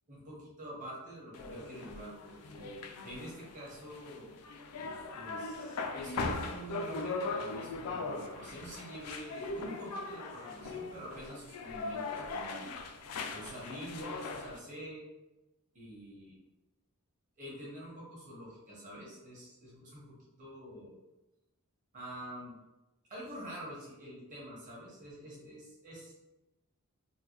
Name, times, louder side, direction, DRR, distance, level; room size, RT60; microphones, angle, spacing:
voice 1, 0.1-4.3 5.1-12.7 13.3-15.0 15.7-16.4 17.4-21.0 21.9-22.6 23.1-26.1, equal, 35° right, -6 dB, 1.2 m, -47 dB
sound 1, 1.3-14.6, left 3 dB, 90° left, 0.4 m, -40 dB
3.8 x 2.2 x 3.0 m, 1.0 s
head